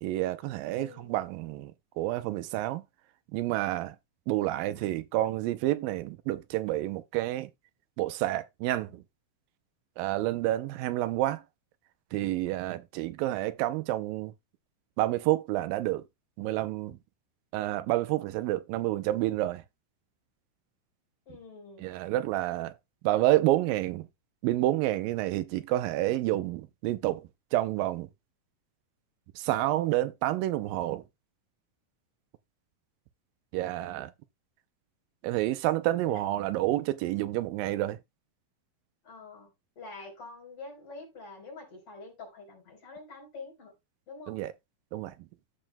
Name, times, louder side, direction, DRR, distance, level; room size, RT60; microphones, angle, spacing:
voice 1, 0.0-2.8 3.3-4.0 4.3-7.5 8.0-9.0 10.0-11.4 12.1-14.3 15.0-16.0 16.4-17.0 17.5-19.6 21.8-22.8 23.0-24.1 24.4-28.1 29.4-31.0 33.5-34.1 35.2-38.0 44.3-44.5 44.9-45.1, right 15 dB, 90° right, 2.4 m, -29 dB
voice 2, 0.7-1.1 21.3-21.9 33.5-34.1 36.0-36.2 39.0-39.5 39.8-43.7 44.1-44.4, left 3 dB, 40° left, 4.8 m, -46 dB
14.5 x 4.9 x 2.2 m
omnidirectional pair, 3.9 m